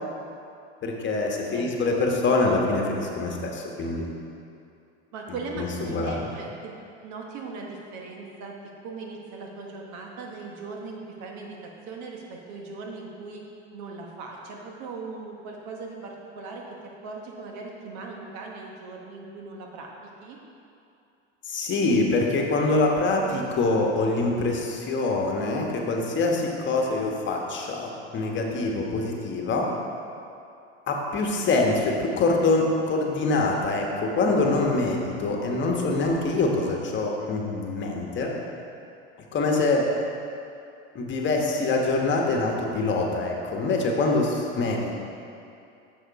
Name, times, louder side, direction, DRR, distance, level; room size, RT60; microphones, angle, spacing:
voice 1, 0.8-4.1 5.6-6.2 21.4-29.7 30.9-38.3 39.3-39.9 40.9-45.0, left 3 dB, 35° left, 0 dB, 1.3 m, -25 dB
voice 2, 1.5-1.8 5.1-6.7 7.0-8.6 8.8-13.4 13.7-19.9 20.2-20.4, right 4 dB, 55° right, 0 dB, 1.2 m, -39 dB
6.7 x 6.3 x 4.8 m, 2.6 s
hypercardioid pair, 105°, 34 cm